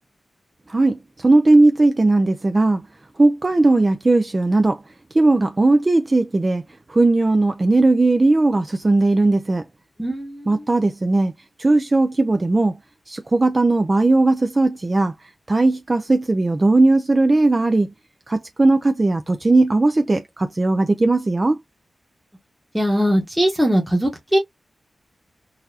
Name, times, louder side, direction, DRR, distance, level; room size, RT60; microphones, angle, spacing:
voice 1, 0.7-2.8 3.2-4.8 5.1-6.6 6.9-9.6 10.5-11.3 11.6-12.8 13.1-15.1 15.5-17.9 18.3-21.6, right 2 dB, 30° right, 0.4 m, -17 dB
voice 2, 10.0-10.6 22.7-24.4, equal, 5° right, 1.0 m, -20 dB
3.9 x 2.6 x 2.6 m
wide cardioid pair, 95°, 0 cm